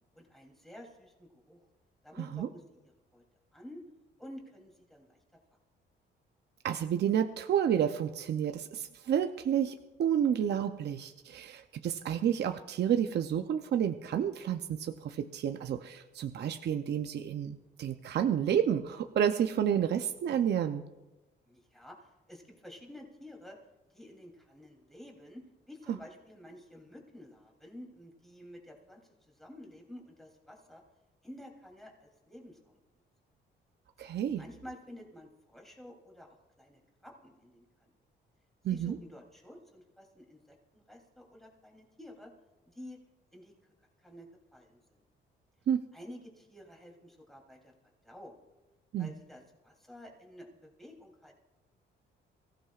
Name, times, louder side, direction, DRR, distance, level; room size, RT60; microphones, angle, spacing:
voice 1, 0.1-1.6 2.0-2.6 3.1-3.2 3.5-3.8 4.2-5.2 21.5-23.6 23.9-30.8 31.2-32.8 34.1-37.9 38.7-42.3 42.6-43.0 43.3-43.5 44.0-45.0 45.9-47.7 48.0-48.4 49.0-51.3, left 1 dB, ahead, 0 dB, 3.2 m, -51 dB
voice 2, 2.2-2.5 6.6-20.8 25.9-26.0 34.0-34.4 38.6-39.0 45.7-45.9 48.9-49.1, right 9 dB, 60° right, 7 dB, 0.7 m, -30 dB
23.5 x 15.5 x 2.5 m, 1.1 s
cardioid pair, 90°, 20 cm